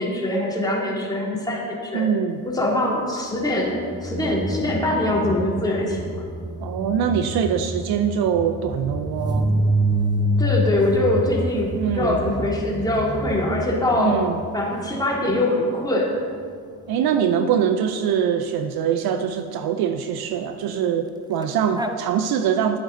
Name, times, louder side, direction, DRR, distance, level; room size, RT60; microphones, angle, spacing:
voice 1, 0.0-2.1 2.4-6.2 10.4-14.2 14.5-16.1, left 1 dB, 10° left, -4 dB, 2.9 m, -23 dB
voice 2, 1.9-2.4 6.6-9.5 11.8-12.2 14.0-14.4 16.9-22.8, right 8 dB, 60° right, 8 dB, 0.7 m, -23 dB
sound 1, 3.7-15.2 21.4-21.5 21.8-22.0, equal, 10° right, 0.7 m, -27 dB
11.5 x 8.0 x 4.0 m, 2.1 s
supercardioid pair, 70°, 43 cm